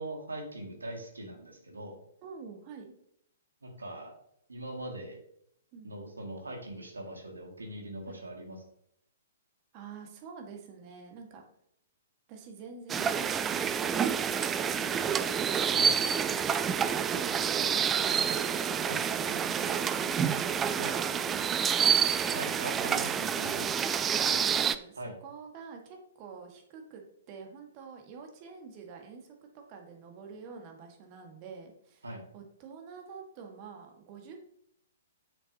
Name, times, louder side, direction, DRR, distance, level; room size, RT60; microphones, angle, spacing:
voice 1, 0.0-2.0 3.6-4.1 4.5-5.2 5.8-8.6 15.8-15.9 18.9-19.0 20.8-20.9 22.3-23.7 25.0-25.1 32.0-32.2, right 1 dB, 80° right, 1 dB, 2.0 m, -41 dB
voice 2, 2.2-2.9 5.7-5.9 8.1-8.2 9.7-11.4 12.3-15.4 15.9-21.7 23.7-23.8 24.1-32.1 32.3-34.5, right 5 dB, 35° right, 2 dB, 1.5 m, -48 dB
sound 1, 12.9-24.8, right 7 dB, 20° right, 0.3 m, -28 dB
7.9 x 6.4 x 2.8 m, 0.71 s
figure-of-eight pair, 120°, 0 cm